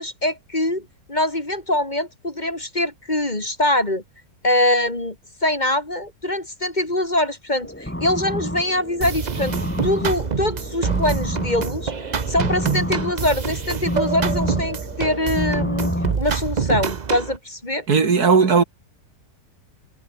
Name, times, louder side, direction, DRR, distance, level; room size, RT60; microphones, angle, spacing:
voice 1, 0.0-4.0 4.4-5.1 5.4-9.6 9.8-11.9 12.3-17.9, left 1 dB, 25° left, 3.3 m, -23 dB
sound 1, 7.6-16.2, left 1 dB, 5° left, 3.0 m, -29 dB
sound 2, 9.0-17.4, right 6 dB, 35° right, 0.7 m, -26 dB
voice 2, 17.9-18.6, right 5 dB, 65° right, 2.6 m, -16 dB
omnidirectional pair, 1.8 m